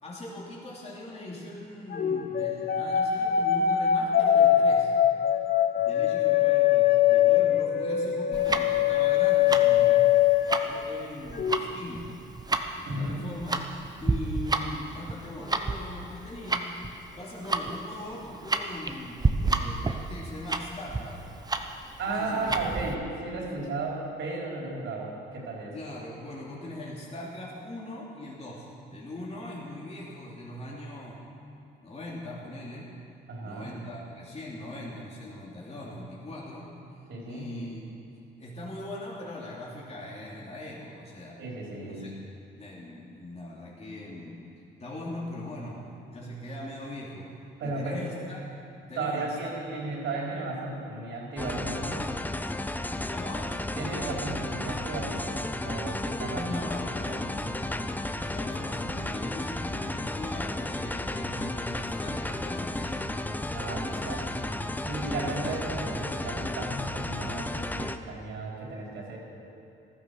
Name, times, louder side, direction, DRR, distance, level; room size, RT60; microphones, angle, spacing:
voice 1, 0.0-4.9 5.7-10.1 10.6-12.1 12.7-13.6 14.0-16.8 17.2-21.2 22.1-22.5 25.7-31.2 31.8-32.9 33.4-36.8 37.3-37.8 38.4-41.4 41.8-42.1 42.6-44.4 44.8-47.3 47.6-48.4 48.9-49.5 53.1-53.5 56.3-57.9 58.3-63.1 63.8-64.6, left 1 dB, 30° left, -5 dB, 3.1 m, -40 dB
sound 1, 1.9-11.0 11.3-11.6, left 10 dB, 50° left, 1.0 m, -23 dB
Tick-tock, 8.3-22.9, right 3 dB, 20° right, 0.9 m, -31 dB
voice 2, 12.9-13.2 22.0-25.8 33.3-33.8 37.1-37.5 41.4-42.0 47.6-48.0 49.0-52.1 53.8-55.4 55.6-56.6 57.1-57.2 63.5-64.3 64.8-69.2, right 3 dB, 75° right, -3 dB, 4.2 m, -34 dB
sound 2, 51.4-68.0, left 2 dB, 10° left, 0.6 m, -33 dB
14.5 x 13.0 x 6.4 m, 2.8 s
cardioid pair, 90°, 20 cm